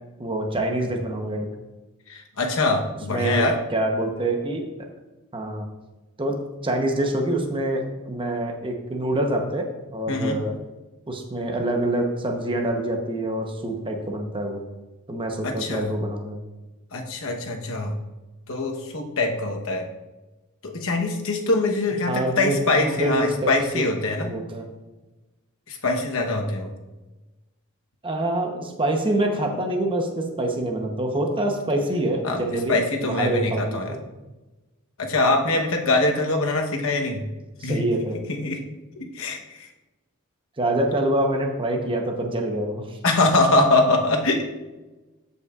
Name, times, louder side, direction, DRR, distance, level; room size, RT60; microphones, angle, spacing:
voice 1, 0.2-1.5 3.1-4.6 5.3-5.6 6.2-6.4 6.6-10.5 11.1-14.6 15.1-16.4 22.1-22.6 22.8-23.8 24.2-24.7 28.0-34.0 37.7-38.2 40.6-43.0, right 1 dB, 25° right, 3 dB, 0.9 m, -26 dB
voice 2, 2.1-3.6 10.1-10.4 15.4-15.9 16.9-18.0 18.5-19.9 20.6-24.3 25.7-26.7 32.2-32.4 32.7-34.0 35.0-37.2 37.6-37.8 38.3-38.6 39.0-39.7 43.0-44.4, left 2 dB, 65° left, 2 dB, 1.0 m, -23 dB
14.0 x 5.5 x 2.4 m, 1.1 s
head